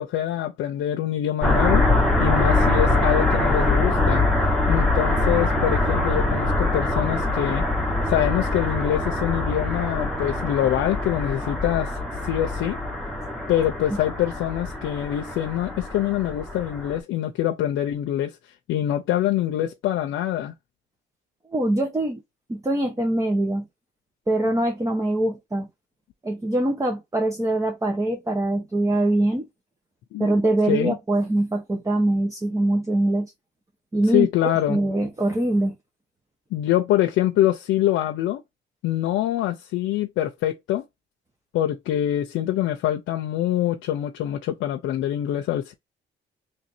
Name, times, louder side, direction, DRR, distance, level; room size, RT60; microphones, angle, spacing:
voice 1, 0.0-1.9 2.2-4.3 4.7-7.6 8.1-12.0 12.2-12.8 13.5-18.4 18.7-20.5 30.1-30.3 30.7-30.9 34.1-34.8 36.5-38.4 38.8-40.8 41.5-45.7, left 12 dB, 85° left, 0.6 m, -24 dB
sound 1, 1.4-17.0, left 2 dB, ahead, 1.1 m, -23 dB
voice 2, 21.5-22.2 22.5-23.6 24.3-25.7 26.2-29.5 30.2-33.3 33.9-35.7, right 1 dB, 15° right, 0.8 m, -23 dB
3.2 x 2.6 x 4.3 m
cardioid pair, 90°, 20 cm